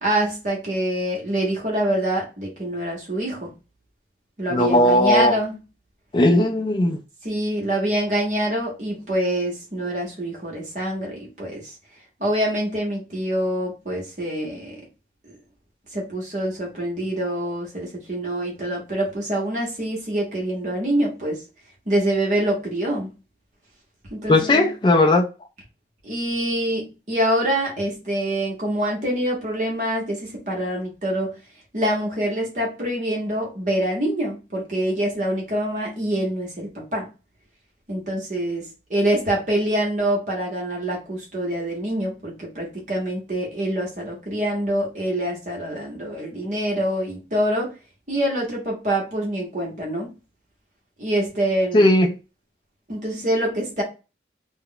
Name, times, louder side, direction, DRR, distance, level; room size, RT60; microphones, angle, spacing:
voice 1, 0.0-3.5 4.4-5.6 7.2-11.7 12.2-14.8 15.3-15.4 15.9-21.4 21.9-23.1 24.1-24.7 26.0-31.3 31.7-37.1 37.9-47.7 48.1-50.1 51.0-51.9 52.9-53.8, right 1 dB, 40° right, 0.9 m, -25 dB
voice 2, 4.5-5.4 6.1-7.0 24.3-25.3 51.7-52.1, left 1 dB, 25° left, 0.3 m, -17 dB
2.3 x 2.0 x 3.7 m
head